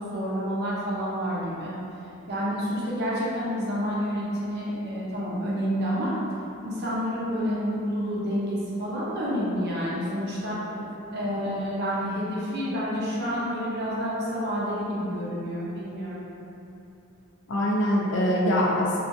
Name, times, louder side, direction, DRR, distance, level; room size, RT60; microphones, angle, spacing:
voice 1, 0.0-1.7 2.3-6.1 6.6-10.6 11.1-16.3, equal, 55° right, -7 dB, 0.6 m, -29 dB
voice 2, 11.1-11.6 17.5-19.0, equal, 60° left, -5 dB, 0.5 m, -24 dB
2.5 x 2.3 x 2.6 m, 2.9 s
head